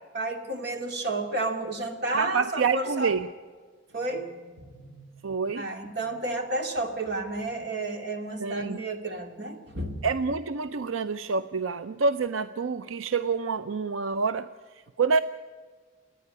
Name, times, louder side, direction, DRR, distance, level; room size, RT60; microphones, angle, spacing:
voice 1, 0.1-3.1 3.9-5.1 5.6-10.0, right 2 dB, 55° right, 4 dB, 2.4 m, -32 dB
voice 2, 2.1-3.3 5.2-5.7 8.4-8.8 10.0-14.5 15.0-15.2, right 5 dB, 85° right, 12 dB, 0.5 m, -27 dB
28.5 x 10.0 x 9.6 m, 1.5 s
head